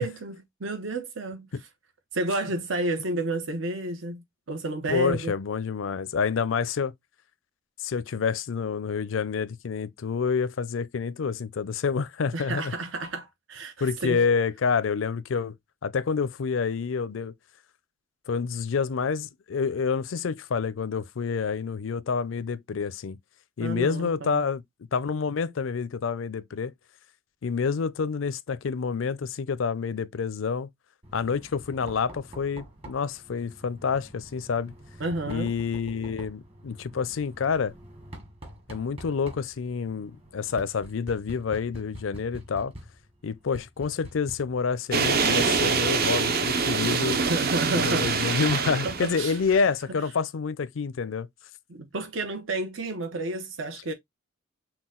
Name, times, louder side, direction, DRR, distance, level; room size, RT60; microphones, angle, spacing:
voice 1, 0.0-1.5 2.1-5.3 12.3-14.2 23.6-24.4 35.0-35.5 47.3-48.2 48.8-49.4 49.9-50.0 51.7-53.9, right 2 dB, 75° right, 0.9 m, -31 dB
voice 2, 4.9-6.9 7.8-12.7 13.8-15.5 15.8-17.3 18.3-23.2 23.6-24.6 24.9-26.7 27.4-30.7 31.1-34.7 35.3-37.7 38.7-42.7 43.2-47.2 47.7-51.3, left 5 dB, 75° left, 0.5 m, -28 dB
Knock, 31.0-49.4, right 1 dB, 30° right, 1.3 m, -47 dB
sound 1, 44.9-49.6, right 5 dB, 50° right, 0.7 m, -25 dB
5.9 x 2.2 x 3.7 m
head